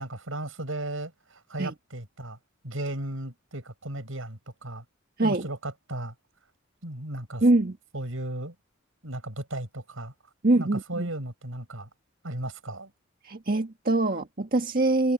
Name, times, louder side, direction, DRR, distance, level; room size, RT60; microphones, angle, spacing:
voice 1, 0.0-2.4 2.6-4.8 5.2-6.1 6.8-7.4 7.9-8.6 9.0-10.1 10.6-11.9 12.2-12.9, right 1 dB, 75° right, 5.7 m, -35 dB
voice 2, 7.4-7.8 10.4-11.1 13.2-15.1, right 2 dB, 45° right, 1.6 m, -23 dB
head